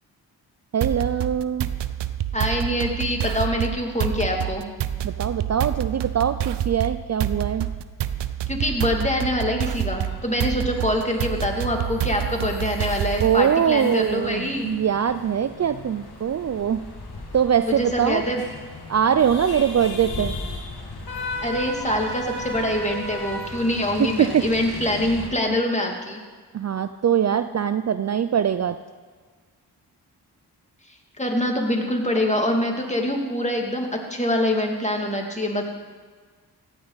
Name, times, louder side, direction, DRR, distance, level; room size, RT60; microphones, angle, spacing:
voice 1, 0.7-1.7 5.0-7.7 13.2-16.9 17.3-18.2 18.9-20.4 23.8-24.4 26.5-28.8, right 8 dB, 40° right, 11 dB, 0.5 m, -22 dB
sound 1, 0.8-13.5, right 11 dB, 80° right, 0.6 m, -28 dB
voice 2, 2.3-4.7 8.5-14.7 17.7-18.4 21.4-26.2 31.2-35.7, left 1 dB, 15° left, 1 dB, 2.5 m, -25 dB
sound 2, 9.8-25.3, left 2 dB, 65° left, 2.1 m, -36 dB
15.5 x 10.0 x 4.1 m, 1.5 s
cardioid pair, 45°, 41 cm